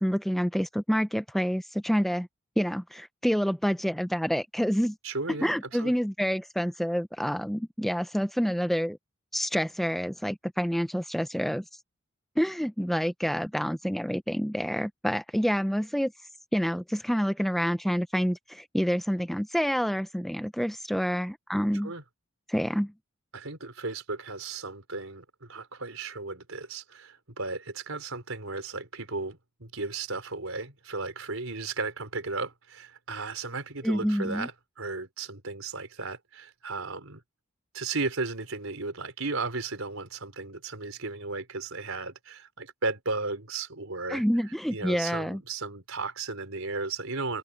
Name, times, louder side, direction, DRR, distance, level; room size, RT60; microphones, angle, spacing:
voice 1, 0.0-2.3 2.6-5.0 5.4-9.0 9.3-11.6 12.4-16.1 16.5-21.9 22.5-22.9 33.8-34.5 44.1-45.4, equal, ahead, 0.5 m, -28 dB
voice 2, 5.0-5.5 5.8-5.9 21.8-22.0 23.3-34.5 34.8-37.2 37.7-44.2 44.7-47.4, right 3 dB, 80° right, 4.3 m, -35 dB
open air
head